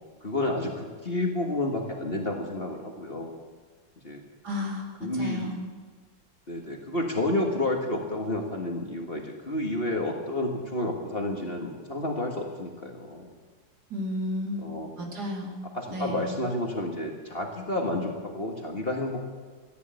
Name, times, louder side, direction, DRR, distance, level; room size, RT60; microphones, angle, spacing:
voice 1, 0.2-3.3 4.0-4.2 5.0-5.6 6.5-13.3 14.6-14.9 15.7-19.2, left 1 dB, 30° left, 1 dB, 1.7 m, -30 dB
voice 2, 4.4-4.8 5.2-5.6 13.9-14.6 15.0-15.6 15.9-16.3, left 1 dB, 60° right, 1 dB, 3.0 m, -32 dB
14.0 x 11.0 x 9.1 m, 1.4 s
omnidirectional pair, 2.0 m